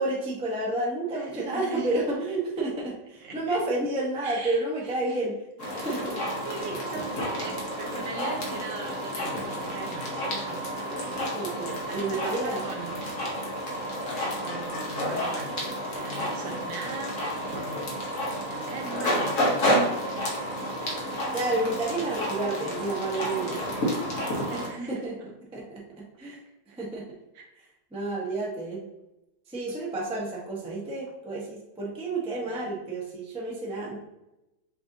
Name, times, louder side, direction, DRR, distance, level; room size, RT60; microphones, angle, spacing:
voice 1, 0.0-5.3 5.7-6.2 10.9-12.6 21.3-23.6 24.5-24.6 24.9-25.1 25.5-26.4 26.8-27.0 27.9-28.9 29.5-34.0, right 2 dB, 10° right, -4 dB, 0.3 m, -30 dB
voice 2, 1.1-2.0 3.2-3.6 4.2-5.3 5.6-5.9 6.4-10.6 11.9-13.1 14.3-15.6 15.9-17.2 17.4-17.9 18.4-20.2 24.5-25.3 27.3-27.4 32.4-32.8, right 3 dB, 85° right, 1 dB, 1.6 m, -40 dB
sound 1, 5.6-24.7, equal, 50° left, 1.2 m, -30 dB
6.5 x 2.6 x 2.7 m, 0.96 s
omnidirectional pair, 2.0 m